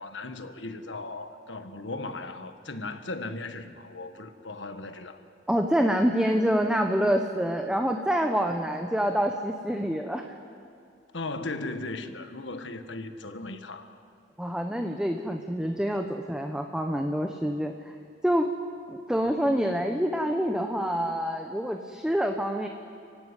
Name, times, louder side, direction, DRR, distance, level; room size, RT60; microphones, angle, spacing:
voice 1, 0.0-5.2 11.1-13.9, left 2 dB, 70° left, 8 dB, 1.5 m, -37 dB
voice 2, 5.5-10.3 14.4-17.9 18.2-18.5 18.9-22.7, equal, 5° right, 4 dB, 1.0 m, -26 dB
29.5 x 16.0 x 9.8 m, 2.4 s
head